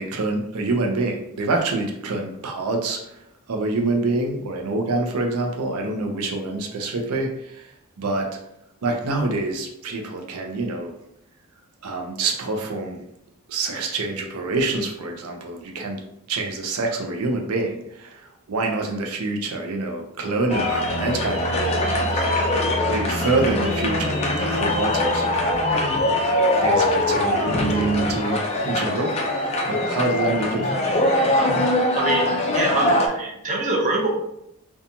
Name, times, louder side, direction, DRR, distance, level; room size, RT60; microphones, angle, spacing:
voice 1, 0.0-3.2 3.5-7.7 8.0-8.3 8.8-10.9 11.8-13.0 13.5-16.0 16.3-22.5 22.9-25.6 26.6-29.3 29.7-30.9, right 2 dB, 80° right, 2 dB, 0.5 m, -26 dB
sound 1, 20.5-33.1, left 1 dB, 30° left, 0.3 m, -22 dB
voice 2, 31.9-34.1, right 2 dB, 35° right, -2 dB, 0.5 m, -24 dB
2.8 x 2.2 x 2.5 m, 0.78 s
head